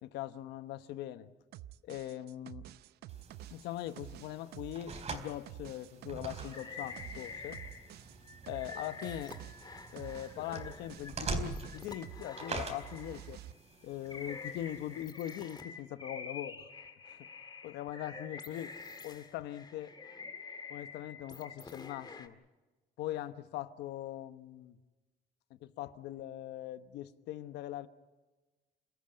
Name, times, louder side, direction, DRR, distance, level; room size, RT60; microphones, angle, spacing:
voice 1, 0.0-1.3 1.8-2.7 3.5-7.6 8.5-9.4 9.9-13.4 13.8-16.7 17.1-17.3 17.6-18.8 19.0-19.9 20.7-22.3 23.0-24.7 25.6-27.9, left 13 dB, 85° left, 11 dB, 1.2 m, -41 dB
sound 1, 1.5-12.3 12.6-13.5, right 13 dB, 70° right, 0.7 m, -50 dB
sound 2, 3.1-15.0, right 4 dB, 40° right, 3.8 m, -45 dB
sound 3, 6.4-8.0 8.2-13.4 13.9-22.3, left 4 dB, 25° left, 1.9 m, -47 dB
29.0 x 14.0 x 9.0 m, 1.2 s
cardioid pair, 110°, 17 cm